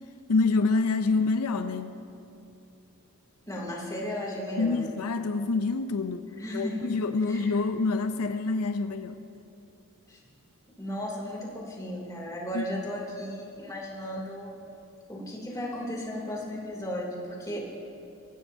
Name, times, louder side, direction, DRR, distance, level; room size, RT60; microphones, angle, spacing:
voice 1, 0.3-2.0 4.6-9.2 12.5-12.6, left 3 dB, 80° left, 9 dB, 0.5 m, -27 dB
voice 2, 3.5-4.9 6.3-6.8 7.3-7.6 10.1-10.2 10.8-14.6 15.1-17.6, equal, 15° left, -3 dB, 2.9 m, -35 dB
22.0 x 16.5 x 2.7 m, 2.7 s
head